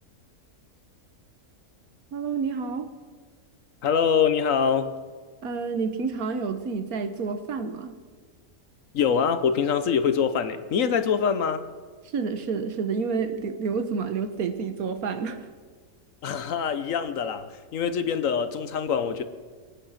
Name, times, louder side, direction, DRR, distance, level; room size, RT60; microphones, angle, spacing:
voice 1, 2.1-2.9 5.4-8.0 12.1-15.4, right 5 dB, 80° right, 9 dB, 1.6 m, -29 dB
voice 2, 3.8-4.9 8.9-11.6 16.2-19.2, left 7 dB, 65° left, 11 dB, 1.2 m, -24 dB
23.0 x 9.0 x 5.8 m, 1.5 s
omnidirectional pair, 1.5 m